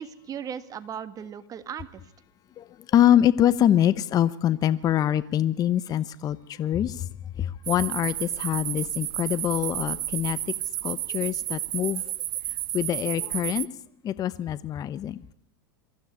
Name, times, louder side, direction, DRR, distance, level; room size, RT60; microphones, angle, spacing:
voice 1, 0.0-2.0, right 8 dB, 30° right, 1.7 m, -37 dB
voice 2, 2.6-7.1 7.4-10.4 10.8-12.1 12.7-13.7 14.0-15.2, left 11 dB, 35° left, 0.9 m, -24 dB
sound 1, 7.6-13.7, right 14 dB, 75° right, 0.9 m, -32 dB
23.5 x 15.5 x 9.7 m
hypercardioid pair, 105°, 12 cm